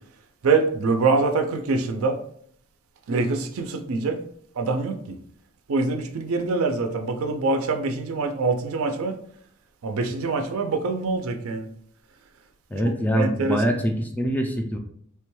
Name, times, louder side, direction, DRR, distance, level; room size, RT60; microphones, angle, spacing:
voice 1, 0.4-2.2 3.1-4.2 4.6-5.0 5.7-9.2 9.8-11.7 13.2-13.8, right 3 dB, 75° right, 0.4 m, -24 dB
voice 2, 12.7-14.8, equal, 10° left, 0.3 m, -24 dB
3.3 x 2.2 x 3.0 m
head